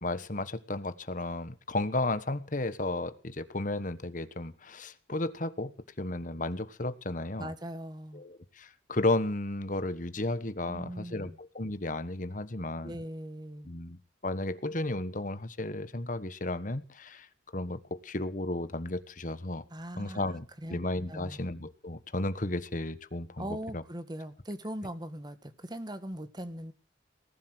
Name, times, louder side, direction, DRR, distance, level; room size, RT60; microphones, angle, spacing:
voice 1, 0.0-5.7 6.0-7.5 8.1-13.0 13.6-17.3 17.5-19.6 20.0-23.8, left 2 dB, 45° left, 1.3 m, -33 dB
voice 2, 7.4-8.2 10.7-11.4 12.8-13.7 19.7-20.2 20.6-20.8 21.1-21.4 23.4-26.7, right 1 dB, 20° right, 1.6 m, -40 dB
19.5 x 11.5 x 6.3 m
head